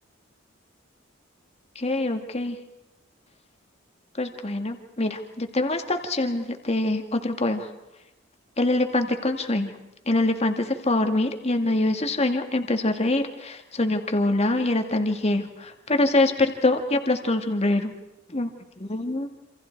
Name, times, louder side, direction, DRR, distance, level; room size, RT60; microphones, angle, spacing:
voice 1, 1.8-2.6 4.2-7.7 8.6-9.7 10.1-17.9 18.3-18.5 18.9-19.3, left 2 dB, 35° left, 5 dB, 2.1 m, -24 dB
28.0 x 27.0 x 4.7 m, 0.94 s
head